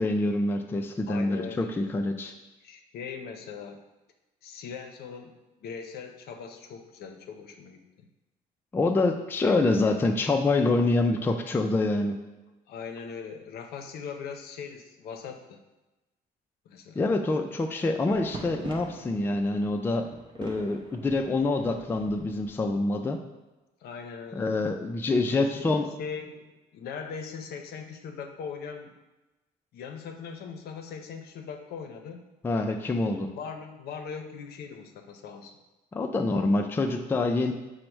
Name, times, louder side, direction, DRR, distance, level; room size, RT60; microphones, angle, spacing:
voice 1, 0.0-2.3 8.7-12.2 17.0-20.1 20.4-23.2 24.3-25.9 32.4-33.3 35.9-37.5, left 2 dB, 15° left, 4 dB, 0.3 m, -26 dB
voice 2, 1.1-1.7 2.6-3.8 4.4-8.1 12.7-15.6 16.7-17.0 23.8-24.5 25.6-26.5 26.7-28.9 29.7-32.2 33.0-35.5, left 6 dB, 65° left, 5 dB, 0.6 m, -40 dB
sound 1, 17.8-22.8, right 3 dB, 25° right, 0.6 m, -45 dB
5.1 x 2.1 x 4.5 m, 1.1 s
cardioid pair, 110°, 17 cm